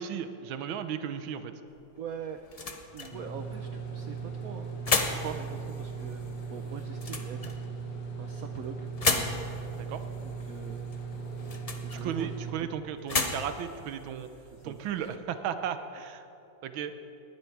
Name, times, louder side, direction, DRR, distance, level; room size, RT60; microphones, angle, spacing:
voice 1, 0.0-1.5 5.2-5.4 9.8-10.0 11.9-14.3 14.6-16.2 16.6-16.9, right 8 dB, 90° right, 10 dB, 1.6 m, -35 dB
sound 1, 1.7-15.2, left 3 dB, 50° left, 0.4 m, -36 dB
voice 2, 2.0-2.4 2.9-6.2 6.5-7.6 8.2-9.4 10.2-10.9 11.8-12.7 14.5-15.1, right 8 dB, 70° right, 7 dB, 0.8 m, -43 dB
sound 2, 3.1-12.5, right 5 dB, 70° left, 2.3 m, -38 dB
19.5 x 11.0 x 4.6 m, 2.9 s
omnidirectional pair, 2.1 m